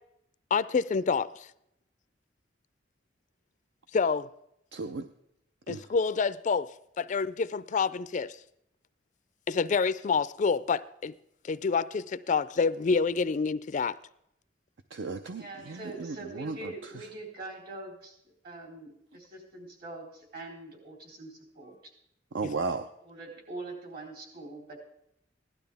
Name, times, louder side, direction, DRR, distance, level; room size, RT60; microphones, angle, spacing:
voice 1, 0.5-1.3 3.9-4.3 5.7-6.7 7.0-8.4 9.5-11.1 11.5-13.9, left 5 dB, 45° left, 16 dB, 0.4 m, -27 dB
voice 2, 4.7-5.0 5.7-5.8 14.9-17.0 22.3-22.9, right 3 dB, 75° right, 8 dB, 0.6 m, -35 dB
voice 3, 15.4-18.2 18.4-21.8 23.0-24.8, right 2 dB, 55° right, 0 dB, 4.0 m, -43 dB
16.5 x 12.0 x 3.5 m, 0.78 s
head